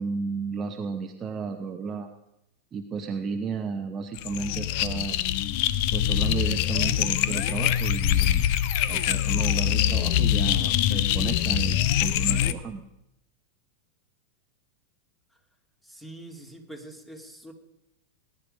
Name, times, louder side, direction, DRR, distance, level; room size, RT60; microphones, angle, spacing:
voice 1, 0.0-2.1 2.7-5.3 5.9-8.5 8.9-12.8, right 5 dB, 25° right, 5 dB, 0.9 m, -33 dB
sound 1, 4.1-12.5, left 12 dB, 45° left, 0.7 m, -24 dB
voice 2, 15.8-17.5, right 1 dB, 5° left, 5 dB, 2.3 m, -44 dB
19.0 x 10.5 x 5.2 m, 0.85 s
figure-of-eight pair, 90°, 0 cm